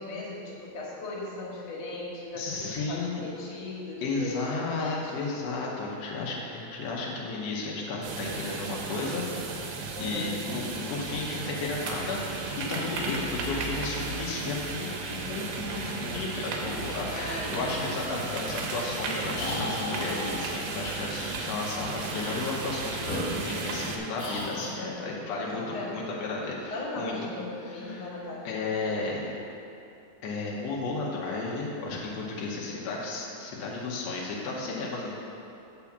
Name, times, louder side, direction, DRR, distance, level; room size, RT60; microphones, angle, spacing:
voice 1, 0.0-5.1 9.9-10.4 12.7-13.3 17.1-17.5 18.2-18.4 24.8-25.1 25.5-26.0 26.7-28.6 32.5-32.8, left 2 dB, 55° left, -5 dB, 2.2 m, -38 dB
voice 2, 2.4-3.2 4.0-9.2 9.6-12.3 12.7-25.6 25.9-27.1 27.9-28.1 28.4-29.3 30.2-35.2, left 3 dB, 80° left, -4 dB, 1.4 m, -33 dB
sound 1, 8.0-24.0, right 4 dB, 85° right, 2.5 m, -35 dB
sound 2, 19.3-20.5 21.1-21.4 22.1-22.6 23.0-23.8 24.2-24.8, left 1 dB, 30° left, 1.8 m, -35 dB
7.2 x 4.7 x 7.1 m, 2.8 s
omnidirectional pair, 4.1 m